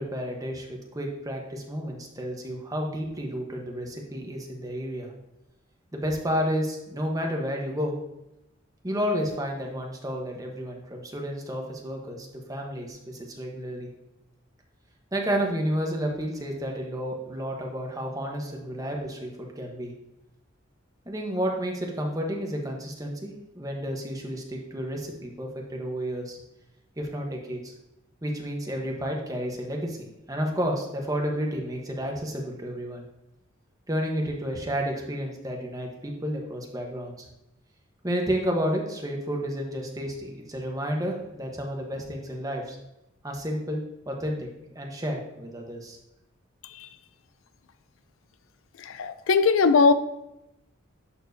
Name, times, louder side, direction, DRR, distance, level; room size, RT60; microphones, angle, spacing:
voice 1, 0.0-5.1 5.9-8.0 8.8-13.9 15.1-19.9 21.1-26.4 27.0-27.7 28.2-33.0 33.9-37.3 38.0-42.8 43.2-44.5 44.7-46.0, equal, 20° right, 0 dB, 1.1 m, -31 dB
voice 2, 48.8-49.9, left 4 dB, 75° left, 12 dB, 0.4 m, -20 dB
11.0 x 4.4 x 2.7 m, 0.89 s
head